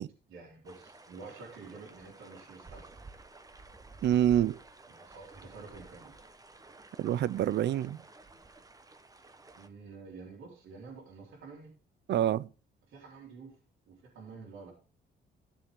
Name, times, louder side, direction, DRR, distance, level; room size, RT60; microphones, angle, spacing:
voice 1, 0.3-3.0 4.9-6.2 9.5-11.7 12.9-13.5 13.9-14.7, right 4 dB, 80° right, 4.0 m, -49 dB
sound 1, 0.6-9.7, right 3 dB, 15° right, 1.0 m, -53 dB
voice 2, 4.0-4.6 7.0-8.0 12.1-12.5, right 11 dB, 60° right, 0.5 m, -27 dB
14.0 x 7.1 x 3.7 m
cardioid pair, 90°, 20 cm